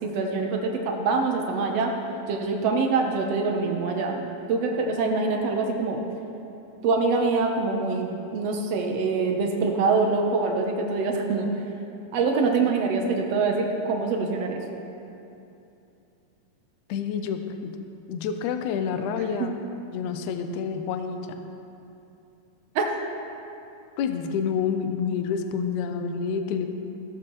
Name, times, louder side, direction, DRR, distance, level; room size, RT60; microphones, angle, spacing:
voice 1, 0.0-1.9 2.3-6.0 6.8-11.5 12.1-14.6 19.4-19.5 22.7-22.9, right 4 dB, 80° right, 2 dB, 1.4 m, -25 dB
voice 2, 16.9-17.7 18.1-19.6 19.9-21.5 24.0-26.7, left 6 dB, 75° left, 6 dB, 1.8 m, -28 dB
16.5 x 14.0 x 3.0 m, 2.8 s
omnidirectional pair, 4.2 m